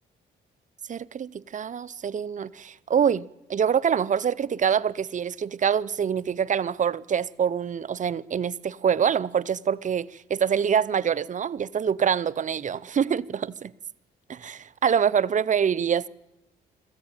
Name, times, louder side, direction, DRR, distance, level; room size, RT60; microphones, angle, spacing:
voice 1, 0.9-13.7 14.3-16.1, right 7 dB, 40° right, 0.6 m, -25 dB
21.0 x 14.0 x 8.9 m
cardioid pair, 90°, 20 cm